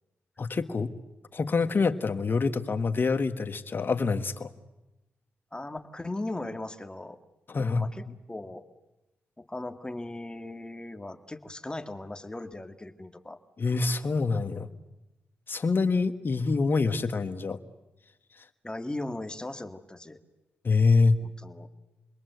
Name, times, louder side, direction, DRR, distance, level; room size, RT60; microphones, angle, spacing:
voice 1, 0.4-0.9 1.3-4.5 7.5-7.9 13.6-14.7 15.5-17.6 20.6-21.2, left 4 dB, 55° left, 10 dB, 1.7 m, -26 dB
voice 2, 5.5-7.2 7.5-8.7 9.4-13.4 18.6-20.2 21.2-21.7, left 2 dB, 20° left, 9 dB, 2.0 m, -38 dB
28.5 x 22.0 x 8.2 m, 1.0 s
supercardioid pair, 50°, 4 cm